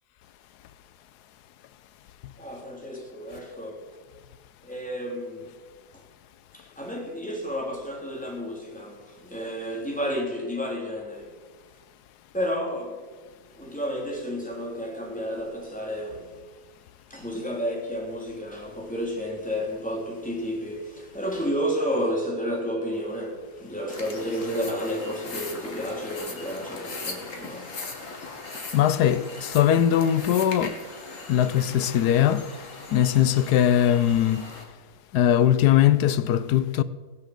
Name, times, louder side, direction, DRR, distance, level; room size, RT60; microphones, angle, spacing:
voice 1, 2.4-3.9 4.6-5.5 5.9-6.0 6.5-11.4 12.3-13.0 13.6-16.4 17.1-28.8, equal, 5° left, 3.5 m, -31 dB
sound 1, 23.9-34.6, left 3 dB, 55° left, 2.5 m, -39 dB
voice 2, 28.7-30.8 31.3-32.5 32.9-34.5 35.1-36.8, left 10 dB, 85° left, 1.3 m, -20 dB
19.5 x 7.2 x 7.9 m
omnidirectional pair, 1.7 m